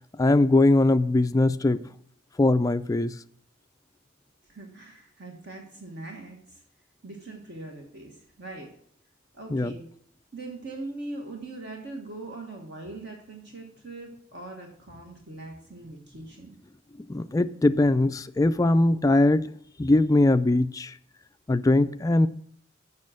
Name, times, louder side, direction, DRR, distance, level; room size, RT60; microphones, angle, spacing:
voice 1, 0.2-1.8 2.4-3.2 9.5-9.7 17.1-19.5 19.8-20.9 21.5-22.3, left 2 dB, 15° left, 0.3 m, -21 dB
voice 2, 4.5-6.6 7.0-8.7 9.3-9.8 10.3-16.5, right 2 dB, 55° right, 1.4 m, -41 dB
7.5 x 6.1 x 7.4 m
head